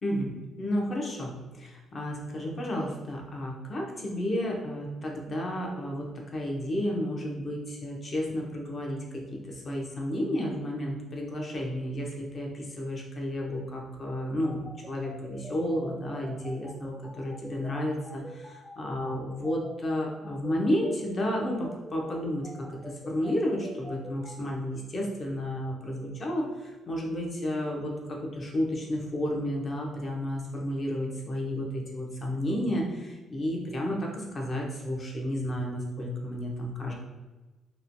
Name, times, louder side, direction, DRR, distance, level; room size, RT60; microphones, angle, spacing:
voice 1, 0.0-18.2 18.8-36.9, equal, 40° left, 0 dB, 0.6 m, -32 dB
sound 1, 14.4-24.3, equal, ahead, 0.5 m, -45 dB
3.0 x 2.1 x 2.6 m, 1.2 s
cardioid pair, 90°, 0 cm